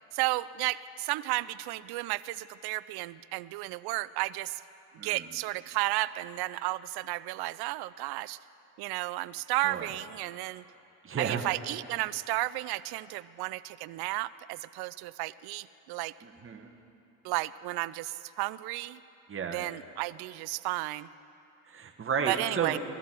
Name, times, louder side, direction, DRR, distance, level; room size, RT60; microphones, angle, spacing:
voice 1, 0.1-4.6 5.0-8.4 8.8-10.6 11.2-16.1 17.2-19.0 19.5-21.1 22.3-22.8, right 18 dB, 55° right, 18 dB, 0.5 m, -33 dB
voice 2, 5.0-5.3 9.6-9.9 11.0-11.4 16.2-16.7 19.3-19.6 21.6-22.8, right 6 dB, 25° right, 3 dB, 1.3 m, -33 dB
17.5 x 12.5 x 4.5 m, 2.8 s
hypercardioid pair, 70°, 46 cm